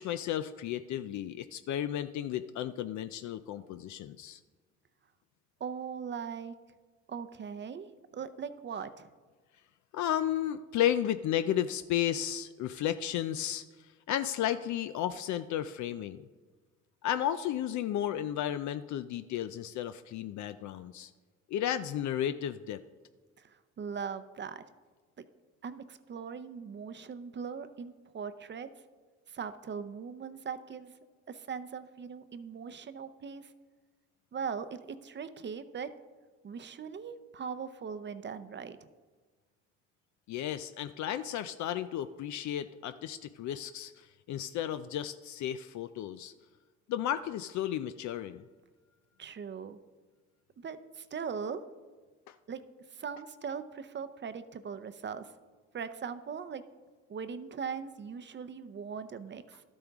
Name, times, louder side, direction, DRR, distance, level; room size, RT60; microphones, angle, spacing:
voice 1, 0.0-4.4 9.9-13.6 14.1-16.2 17.0-21.1 21.5-22.8 40.3-46.3 46.9-48.4 52.3-52.4, left 11 dB, 70° left, 11 dB, 0.4 m, -33 dB
voice 2, 5.6-6.6 7.1-9.1 23.4-24.6 25.2-25.3 25.6-28.7 29.3-30.9 31.3-33.5 34.3-35.9 36.4-38.8 49.2-49.8 50.6-51.6 52.5-52.6 52.9-55.3 55.7-56.6 57.1-59.6, right 6 dB, 35° right, 12 dB, 0.6 m, -40 dB
12.5 x 8.5 x 3.5 m, 1.4 s
cardioid pair, 90°, 30 cm